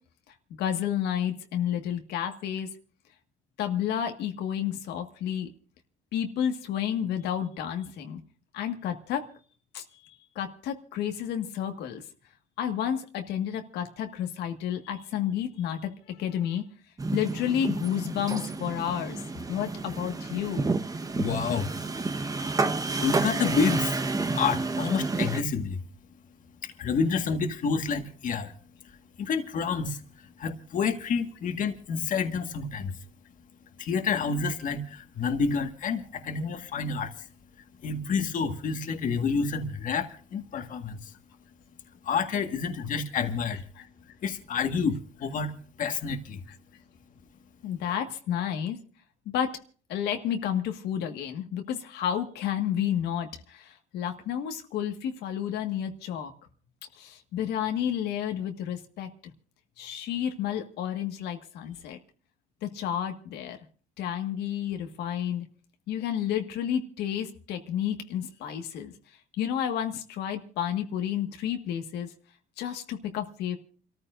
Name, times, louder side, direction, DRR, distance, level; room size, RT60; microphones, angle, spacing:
voice 1, 0.3-2.7 3.6-5.5 6.1-8.2 8.5-9.3 9.7-12.0 12.6-16.7 17.1-19.2 19.5-20.8 40.5-40.7 43.8-43.9 47.6-48.8 49.2-49.6 49.9-56.3 56.9-59.1 59.8-62.0 62.6-63.6 64.0-65.4 65.9-68.9 69.4-72.1 72.6-73.6, left 9 dB, 80° left, 5 dB, 1.7 m, -31 dB
sound 1, 17.0-25.4, right 3 dB, 20° right, 1.1 m, -30 dB
voice 2, 21.1-22.1 23.0-24.0 24.3-25.8 26.6-28.5 29.2-32.9 33.8-37.3 37.8-41.1 42.0-43.6 44.2-46.4, left 5 dB, 50° left, 6 dB, 1.7 m, -29 dB
29.5 x 14.0 x 2.6 m, 0.41 s
cardioid pair, 110°, 17 cm